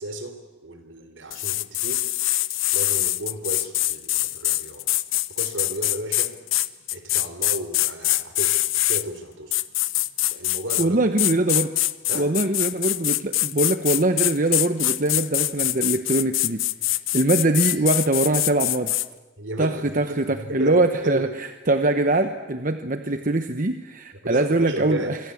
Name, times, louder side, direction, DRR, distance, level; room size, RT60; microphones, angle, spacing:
voice 1, 0.0-2.1 2.7-4.8 5.4-6.4 6.9-8.6 8.9-9.6 10.3-11.0 12.1-12.3 19.4-21.3 24.2-25.2, right 1 dB, 70° right, 8 dB, 3.9 m, -33 dB
sound 1, 1.3-9.0 9.5-10.9 11.2-19.1, left 17 dB, 80° left, 0.8 m, -24 dB
voice 2, 10.8-11.7 12.1-18.9 19.6-25.2, right 2 dB, 40° right, 8 dB, 1.0 m, -23 dB
26.5 x 24.0 x 8.6 m, 1.2 s
head